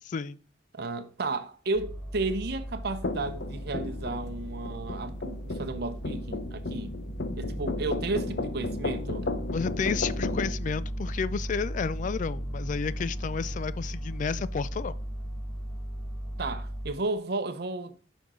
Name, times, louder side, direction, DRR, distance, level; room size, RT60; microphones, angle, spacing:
voice 1, 0.1-0.4 9.5-14.9, left 5 dB, 45° left, 0.3 m, -31 dB
voice 2, 0.7-6.9 7.4-9.3 16.4-18.0, right 3 dB, 60° right, 0.7 m, -33 dB
sound 1, 1.7-16.9, equal, 25° left, 1.3 m, -36 dB
sound 2, 3.0-10.5, left 2 dB, 65° left, 0.7 m, -34 dB
10.0 x 5.4 x 3.7 m
head